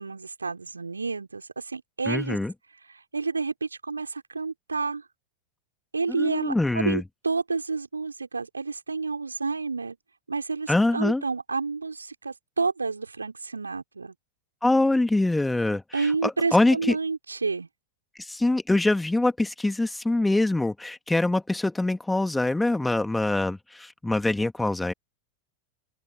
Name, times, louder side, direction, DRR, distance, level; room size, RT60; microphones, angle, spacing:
voice 1, 0.0-2.4 3.1-5.0 5.9-10.0 10.3-14.1 15.9-17.7, right 4 dB, 75° right, 4.5 m, -30 dB
voice 2, 2.1-2.5 6.1-7.0 10.7-11.2 14.6-17.0 18.2-24.9, left 2 dB, 5° left, 2.4 m, -24 dB
open air
figure-of-eight pair, 90°, 0 cm